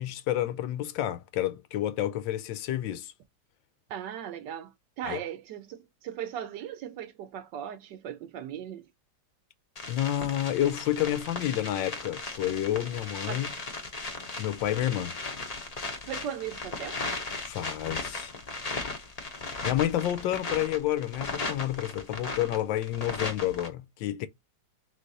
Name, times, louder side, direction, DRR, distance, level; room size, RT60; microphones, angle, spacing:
voice 1, 0.0-3.1 5.0-5.2 9.9-13.5 14.4-15.2 17.4-18.3 19.6-24.3, left 12 dB, 80° left, 1.3 m, -29 dB
voice 2, 3.9-8.8 13.3-13.5 16.1-17.2, right 9 dB, 70° right, 1.2 m, -38 dB
sound 1, 9.8-23.7, left 3 dB, 30° left, 0.7 m, -37 dB
3.9 x 3.2 x 3.9 m
omnidirectional pair, 2.1 m